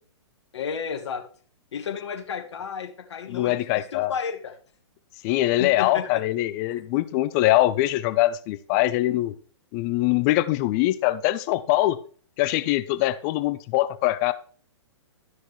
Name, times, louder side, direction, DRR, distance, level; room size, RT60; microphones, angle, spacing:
voice 1, 0.5-1.2 1.7-4.5 5.6-6.2, left 7 dB, 65° left, 4 dB, 1.4 m, -32 dB
voice 2, 3.3-4.1 5.2-9.3 9.7-12.0 12.4-14.3, left 16 dB, 35° left, 14 dB, 0.6 m, -23 dB
12.5 x 6.3 x 3.2 m, 0.42 s
hypercardioid pair, 125°, 15 cm